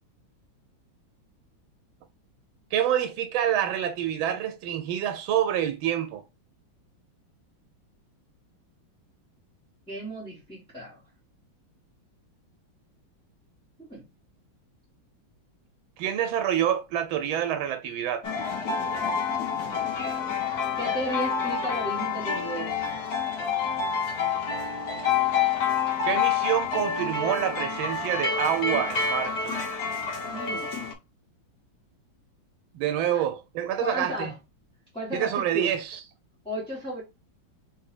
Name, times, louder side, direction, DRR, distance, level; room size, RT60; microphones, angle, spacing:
voice 1, 2.7-6.2 16.0-18.3 26.0-29.5 32.7-34.3 35.1-36.0, right 10 dB, 85° right, 1.4 m, -27 dB
voice 2, 9.9-11.0 13.9-14.0 19.5-19.7 20.8-23.0 30.3-30.7 33.1-33.2 33.8-34.3 34.9-35.7 36.4-37.0, right 1 dB, 5° left, 1.3 m, -34 dB
sound 1, 18.2-30.9, left 6 dB, 60° left, 1.3 m, -28 dB
4.0 x 2.7 x 4.2 m
omnidirectional pair, 2.2 m